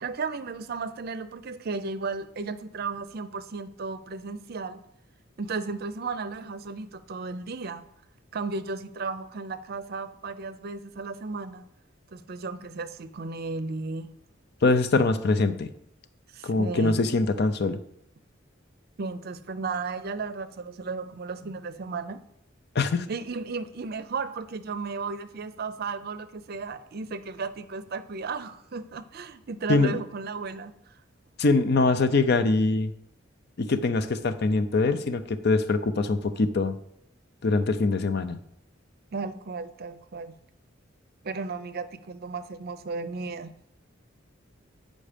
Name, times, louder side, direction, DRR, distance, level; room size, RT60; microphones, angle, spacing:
voice 1, 0.0-4.8 5.4-7.9 8.3-11.6 12.1-14.1 16.3-17.0 19.0-22.2 23.1-30.7 39.1-40.3 41.2-43.5, right 4 dB, 50° right, 0.5 m, -34 dB
voice 2, 14.6-15.7 16.4-17.8 22.7-23.1 29.7-30.0 31.4-32.9 33.6-36.7 37.4-38.4, left 3 dB, 55° left, 0.6 m, -23 dB
8.5 x 5.2 x 5.1 m
head